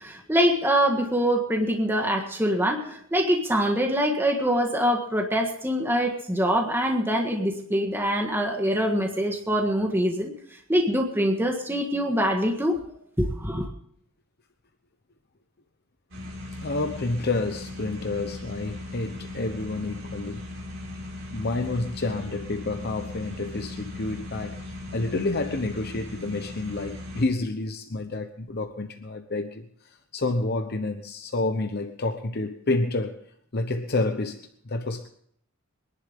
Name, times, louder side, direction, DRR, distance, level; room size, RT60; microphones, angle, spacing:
voice 1, 0.0-10.3 10.7-12.8 13.2-13.7, equal, 10° right, 1.6 m, -24 dB
sound 1, 16.1-27.3, left 1 dB, 65° right, 5.1 m, -38 dB
voice 2, 16.6-20.4 21.3-33.2 33.5-35.1, left 2 dB, 50° left, 1.0 m, -29 dB
23.5 x 11.0 x 3.7 m
head